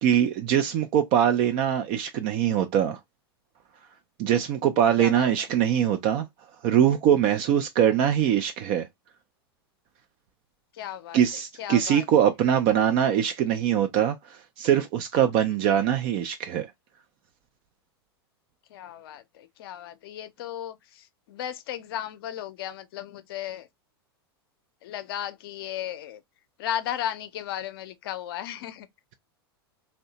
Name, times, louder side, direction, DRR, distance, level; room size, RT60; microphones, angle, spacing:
voice 1, 0.0-3.0 4.2-6.3 6.6-8.9 11.1-16.7, right 9 dB, 45° right, 0.4 m, -22 dB
voice 2, 10.8-11.2 11.6-12.0 18.7-20.7 21.3-23.7 24.8-26.2 26.6-28.9, left 11 dB, 65° left, 0.5 m, -35 dB
2.7 x 2.1 x 2.7 m
hypercardioid pair, 95°, 13 cm